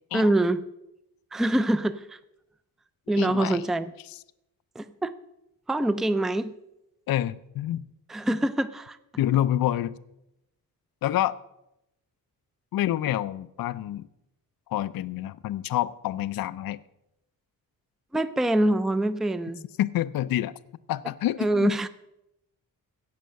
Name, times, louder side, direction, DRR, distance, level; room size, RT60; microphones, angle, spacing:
voice 1, 0.1-0.6 1.3-2.2 3.1-3.9 4.8-5.1 5.7-6.5 8.1-9.0 18.1-19.6 21.4-21.9, right 1 dB, ahead, 14 dB, 0.4 m, -25 dB
voice 2, 3.2-3.7 7.1-7.8 9.2-9.9 11.0-11.4 12.7-14.1 14.7-16.8 19.8-20.5 20.9-21.7, left 13 dB, 70° left, 16 dB, 0.5 m, -27 dB
16.0 x 5.6 x 6.4 m, 0.86 s
cardioid pair, 115°, 36 cm